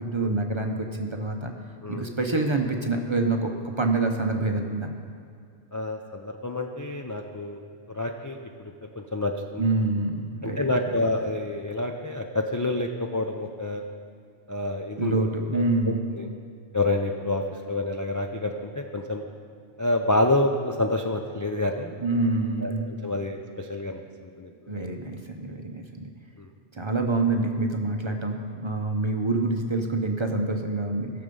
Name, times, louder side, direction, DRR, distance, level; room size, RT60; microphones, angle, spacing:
voice 1, 0.0-1.5 1.9-4.9 9.6-10.7 15.0-16.0 22.0-22.9 24.7-26.1 26.7-31.1, right 2 dB, 30° right, 3 dB, 0.8 m, -26 dB
voice 2, 5.7-7.6 7.9-8.4 9.0-9.7 10.4-13.8 14.5-15.2 15.5-15.6 16.2-16.3 16.7-19.2 19.8-21.9 22.6-22.7 23.0-24.0 24.4-24.5 26.4-26.5, left 2 dB, 25° left, 2 dB, 0.4 m, -28 dB
17.5 x 6.9 x 5.4 m, 2.4 s
omnidirectional pair, 1.1 m